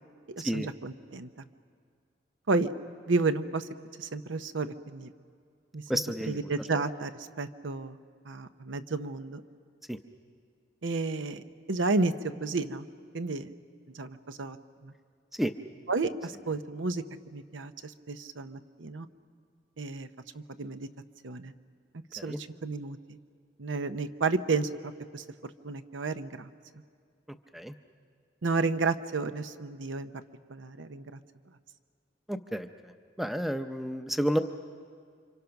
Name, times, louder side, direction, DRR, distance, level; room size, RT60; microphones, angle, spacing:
voice 1, 0.3-1.3 2.5-2.7 3.1-3.7 4.0-5.1 5.7-8.0 8.3-9.4 10.8-12.1 12.4-12.9 13.1-13.5 13.9-14.6 14.8-14.9 15.9-17.0 17.3-19.1 19.8-20.1 20.3-20.9 21.2-21.5 22.1-23.2 23.6-25.2 25.6-26.5 28.4-30.1 30.5-31.2, right 3 dB, 80° right, 10 dB, 0.8 m, -32 dB
voice 2, 5.9-6.4 6.7-6.8 9.9-10.0 15.3-15.5 22.2-22.4 27.5-27.7 32.3-32.9 33.2-34.4, equal, ahead, 8 dB, 0.6 m, -31 dB
29.5 x 25.5 x 5.9 m, 2.1 s
head